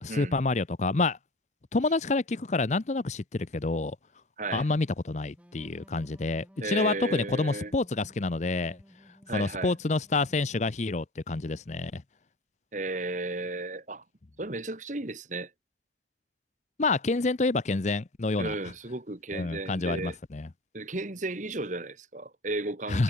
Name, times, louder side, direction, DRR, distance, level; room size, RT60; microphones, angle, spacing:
voice 1, 0.0-1.2 1.7-4.0 4.5-8.8 9.3-12.0 16.8-18.5 19.3-20.5 22.9-23.0, left 3 dB, 40° left, 0.6 m, -28 dB
sound 1, 5.4-11.0, equal, 5° right, 6.5 m, -57 dB
voice 2, 6.6-7.7 9.3-9.7 12.7-14.0 14.4-15.5 18.4-20.1 20.7-23.0, right 2 dB, 40° right, 1.6 m, -34 dB
head